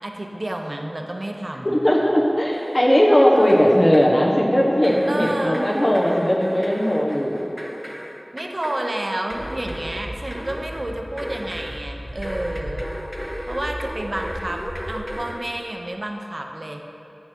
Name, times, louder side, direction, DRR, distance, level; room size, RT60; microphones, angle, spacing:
voice 1, 0.0-1.8 3.3-3.5 5.1-5.7 8.3-12.9 13.5-16.8, right 1 dB, 50° right, 2 dB, 0.6 m, -30 dB
voice 2, 1.6-7.5, equal, 45° left, -3 dB, 1.1 m, -18 dB
sound 1, 2.5-3.2 3.5-4.2 4.8-11.9 12.2-15.5, equal, 5° right, 0.6 m, -35 dB
sound 2, 9.3-15.2, equal, 30° right, 1.1 m, -36 dB
8.1 x 6.5 x 4.4 m, 2.9 s
wide cardioid pair, 50°, 0 cm